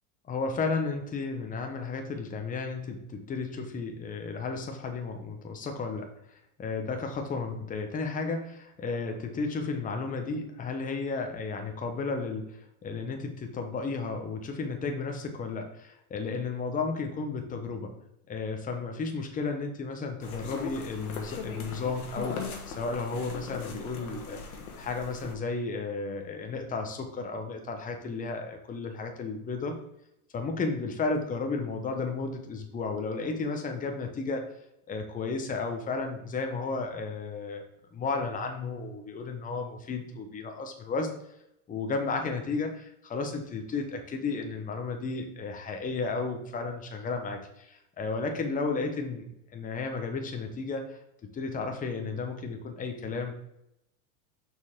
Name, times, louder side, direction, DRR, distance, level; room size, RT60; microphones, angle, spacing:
voice 1, 0.3-6.1 6.6-17.9 18.3-24.4 24.8-29.8 30.3-34.5 34.9-37.6 37.9-41.1 41.7-49.3 49.5-51.0 51.3-53.3, left 4 dB, 20° left, 4 dB, 0.9 m, -33 dB
sound 1, 20.2-25.3, left 5 dB, 80° left, 1.3 m, -39 dB
6.0 x 4.5 x 3.6 m, 0.81 s
hypercardioid pair, 110°, 43 cm